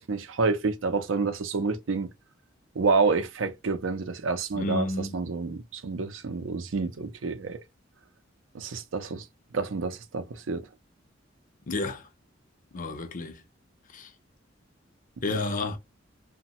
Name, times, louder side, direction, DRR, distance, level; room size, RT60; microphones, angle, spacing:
voice 1, 0.0-2.1 2.8-7.6 8.5-9.2 9.5-10.6, right 4 dB, 80° right, 0.5 m, -28 dB
voice 2, 4.5-5.2 11.7-12.1 12.7-13.4 13.9-14.1 15.2-15.8, left 2 dB, 45° left, 0.5 m, -31 dB
3.0 x 2.2 x 2.8 m
head